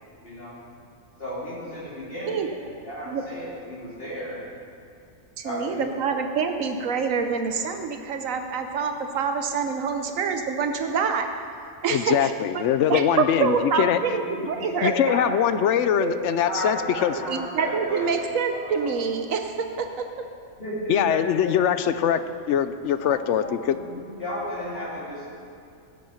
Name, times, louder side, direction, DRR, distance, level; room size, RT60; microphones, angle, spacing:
voice 1, 0.2-0.5 1.2-4.4 5.4-5.9 13.7-15.4 16.0-18.1 18.5-18.9 20.6-22.1 23.0-25.3, equal, 45° left, -6 dB, 3.3 m, -34 dB
voice 2, 5.4-11.3 11.8-12.6 12.9-14.9 17.1-19.9, right 5 dB, 75° right, 6 dB, 1.1 m, -26 dB
voice 3, 11.9-14.0 14.8-17.1 20.9-22.2 22.5-23.7, left 9 dB, 70° left, 12 dB, 0.8 m, -22 dB
16.5 x 7.7 x 5.8 m, 2.3 s
omnidirectional pair, 1.4 m